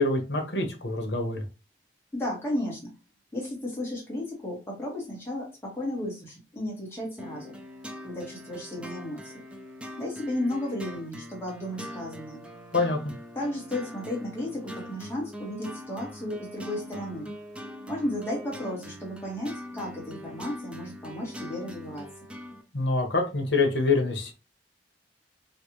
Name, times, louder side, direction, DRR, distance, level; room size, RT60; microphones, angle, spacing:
voice 1, 0.0-1.4 12.7-13.0 22.7-24.3, left 3 dB, 75° left, 4 dB, 1.0 m, -25 dB
voice 2, 2.1-2.9 3.3-7.5 8.0-9.3 10.0-12.4 13.3-17.3 17.9-22.1, left 1 dB, 15° left, -3 dB, 1.5 m, -34 dB
sound 1, 7.2-22.6, equal, 5° right, 0.4 m, -42 dB
3.3 x 2.5 x 2.9 m, 0.30 s
head